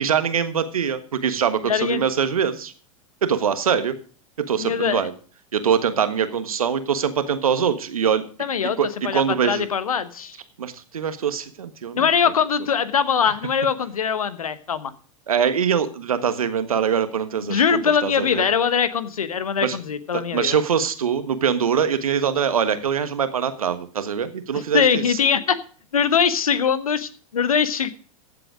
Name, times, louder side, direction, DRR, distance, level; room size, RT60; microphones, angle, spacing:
voice 1, 0.0-2.7 3.2-3.9 4.4-5.1 5.5-8.2 8.8-9.7 10.6-12.1 15.3-18.5 19.6-19.8 20.1-25.2, right 7 dB, 80° right, 11 dB, 1.4 m, -23 dB
voice 2, 1.7-2.0 4.6-5.1 8.4-8.8 9.0-10.3 11.9-14.9 17.5-20.5 24.5-25.6 25.9-27.9, left 7 dB, 80° left, 14 dB, 1.1 m, -22 dB
15.0 x 7.7 x 5.0 m, 0.42 s
hypercardioid pair, 100°, 18 cm